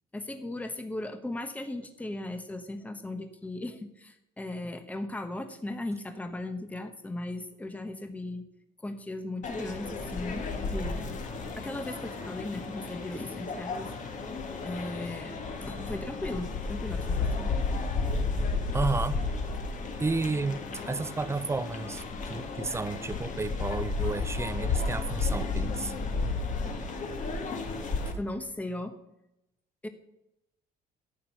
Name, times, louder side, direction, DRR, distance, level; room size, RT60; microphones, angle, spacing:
voice 1, 0.1-8.5 8.8-11.2 11.5-13.9 14.6-15.4 15.6-17.5 28.1-28.9 29.8-29.9, left 2 dB, 10° left, 1.0 m, -37 dB
sound 1, 9.4-28.1, left 3 dB, 50° left, 1.9 m, -33 dB
voice 2, 18.7-19.3 20.0-25.9, right 3 dB, 15° right, 0.6 m, -32 dB
11.5 x 8.5 x 5.8 m
cardioid pair, 110°, 17 cm